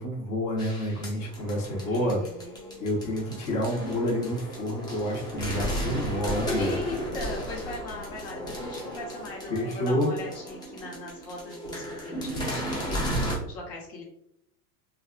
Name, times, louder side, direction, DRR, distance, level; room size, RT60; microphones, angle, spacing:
voice 1, 0.0-2.2 2.8-6.7 9.5-10.1, left 1 dB, 35° left, -3 dB, 1.0 m, -29 dB
sound 1, 0.6-13.4, equal, 10° left, 0.3 m, -34 dB
voice 2, 1.9-3.0 6.6-14.0, left 2 dB, 55° left, -2 dB, 1.2 m, -40 dB
2.6 x 2.4 x 2.4 m, 0.73 s
hypercardioid pair, 100°, 50 cm